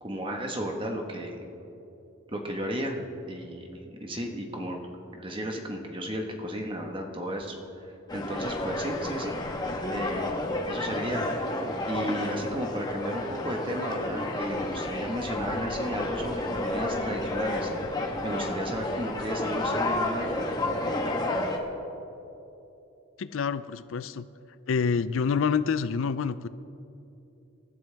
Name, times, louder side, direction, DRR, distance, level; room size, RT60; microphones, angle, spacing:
voice 1, 0.0-1.5 2.3-3.0 3.3-4.9 5.1-9.4 9.9-11.3 11.9-20.5, equal, 25° right, 2 dB, 1.4 m, -34 dB
sound 1, 8.1-21.6, left 2 dB, 20° left, 1.2 m, -31 dB
voice 2, 23.2-24.3 24.7-26.5, left 6 dB, 75° left, 14 dB, 0.4 m, -27 dB
27.0 x 12.0 x 3.5 m, 2.9 s
head